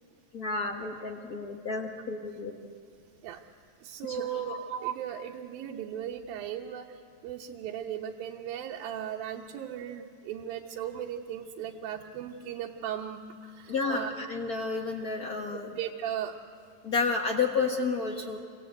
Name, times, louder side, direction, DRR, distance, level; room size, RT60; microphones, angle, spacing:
voice 1, 0.3-2.5 4.1-4.6 13.7-15.7 16.8-18.4, left 4 dB, 80° left, 3 dB, 0.8 m, -31 dB
voice 2, 3.8-14.1 15.5-16.3, right 10 dB, 85° right, -2 dB, 2.8 m, -37 dB
27.0 x 25.5 x 8.1 m, 2.2 s
omnidirectional pair, 4.0 m